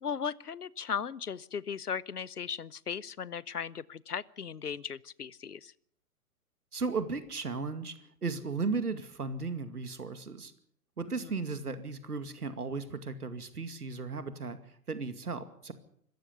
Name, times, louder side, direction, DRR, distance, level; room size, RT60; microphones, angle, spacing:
voice 1, 0.0-5.7 11.2-11.3, left 7 dB, 80° left, 22 dB, 0.9 m, -37 dB
voice 2, 6.7-10.5 11.0-14.6 14.9-15.7, right 4 dB, 80° right, 10 dB, 2.3 m, -35 dB
26.0 x 14.5 x 6.9 m, 0.65 s
figure-of-eight pair, 120°, 45 cm